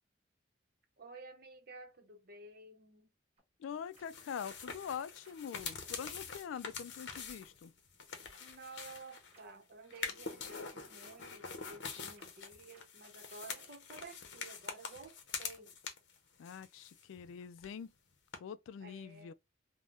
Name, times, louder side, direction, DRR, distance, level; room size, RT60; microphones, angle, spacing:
voice 1, 1.0-3.1 8.4-15.7 18.8-19.3, right 3 dB, 50° right, 0.8 m, -53 dB
sound 1, 3.4-3.5 3.9-4.0 4.6-4.7 5.2-5.3 5.8-6.0 6.5-6.6 7.1-7.2 9.3-9.4 9.9-10.0 10.5-10.6 11.0-11.1 11.6-11.7 12.2-12.3 12.7-12.8 13.3-13.4, right 2 dB, 30° right, 1.1 m, -62 dB
voice 2, 3.6-7.7 16.4-17.9 18.4-19.3, left 7 dB, 80° left, 0.3 m, -44 dB
sound 2, 3.9-9.4 9.9-16.2 16.4-17.3 17.6-17.7 18.3-18.4, left 5 dB, 60° left, 0.7 m, -45 dB
3.5 x 2.1 x 2.4 m
head